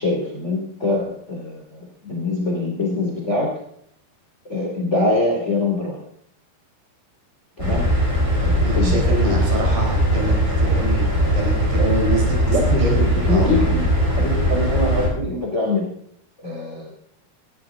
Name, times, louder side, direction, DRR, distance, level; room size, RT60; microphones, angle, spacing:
voice 1, 0.0-3.5 4.5-6.0 7.6-7.8 8.4-9.5 12.5-15.9 16.4-16.9, left 2 dB, 20° left, 0 dB, 2.5 m, -24 dB
sound 1, 7.6-15.1, equal, 10° right, 5.9 m, -20 dB
voice 2, 8.6-11.1 11.3-12.4 12.8-13.7, right 2 dB, 60° right, -1 dB, 5.7 m, -25 dB
18.5 x 12.5 x 3.8 m, 0.69 s
omnidirectional pair, 4.9 m